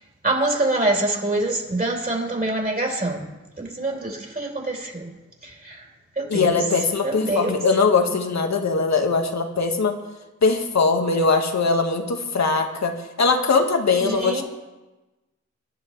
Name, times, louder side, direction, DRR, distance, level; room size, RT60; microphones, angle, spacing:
voice 1, 0.2-3.2 3.6-5.1 5.6-5.8 6.2-6.6 7.0-7.6 14.0-14.4, right 2 dB, 30° right, 0 dB, 4.0 m, -25 dB
voice 2, 6.3-10.0 10.4-14.4, left 4 dB, 60° left, 4 dB, 1.7 m, -21 dB
23.0 x 11.0 x 3.3 m, 1.1 s
cardioid pair, 55°, 32 cm